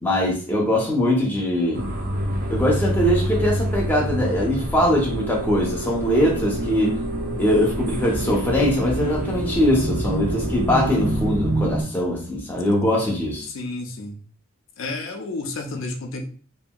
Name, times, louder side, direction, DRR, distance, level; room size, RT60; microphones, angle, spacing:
voice 1, 0.0-1.8 2.5-7.0 7.4-13.5, left 1 dB, 10° left, -3 dB, 0.6 m, -22 dB
sound 1, 1.7-11.8, right 1 dB, 40° right, 0.6 m, -27 dB
sound 2, 5.0-11.1, right 1 dB, 75° right, 0.9 m, -34 dB
voice 2, 13.4-14.2 14.8-16.3, left 2 dB, 65° left, 4 dB, 0.5 m, -31 dB
2.8 x 2.6 x 2.2 m, 0.41 s
head